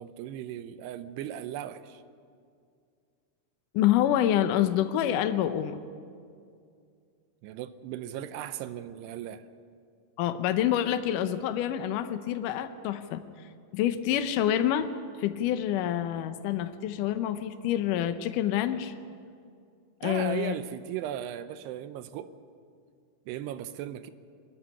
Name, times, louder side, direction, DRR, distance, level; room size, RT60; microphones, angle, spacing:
voice 1, 0.0-2.0 7.4-9.5 20.0-22.3 23.3-24.1, right 11 dB, 85° right, 12 dB, 2.8 m, -37 dB
voice 2, 3.7-5.8 10.2-13.2 13.7-14.9 15.2-18.9 20.0-20.5, left 11 dB, 90° left, 10 dB, 1.8 m, -27 dB
22.0 x 14.0 x 9.9 m, 2.3 s
omnidirectional pair, 4.8 m